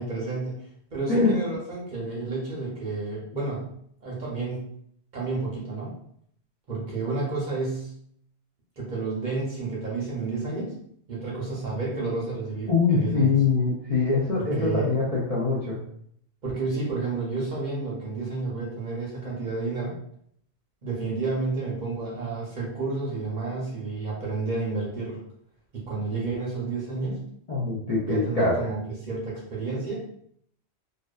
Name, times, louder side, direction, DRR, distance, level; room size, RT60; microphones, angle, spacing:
voice 1, 0.0-3.7 4.0-4.7 5.1-5.9 6.7-7.9 8.8-10.8 11.1-13.3 14.3-14.9 16.4-20.0 20.8-25.2 25.7-27.2 28.1-30.0, right 3 dB, 50° right, -4 dB, 0.7 m, -30 dB
voice 2, 12.7-15.8 27.5-28.5, left 4 dB, 50° left, -7 dB, 0.4 m, -23 dB
2.5 x 2.2 x 2.2 m, 0.68 s
omnidirectional pair, 1.2 m